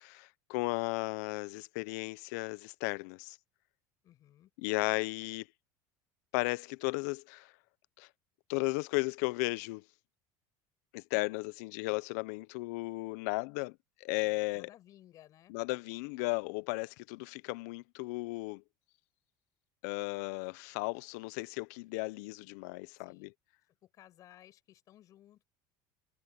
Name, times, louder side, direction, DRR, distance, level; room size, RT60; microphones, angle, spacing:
voice 1, 0.0-3.4 4.6-5.5 6.3-7.5 8.0-8.1 8.5-9.8 10.9-14.7 15.5-18.6 19.8-23.3, left 25 dB, 75° left, 0.6 m, -35 dB
voice 2, 4.0-4.5 14.5-15.5 23.0-23.3 23.8-25.4, left 12 dB, 40° left, 7.8 m, -58 dB
cardioid pair, 155°, 9 cm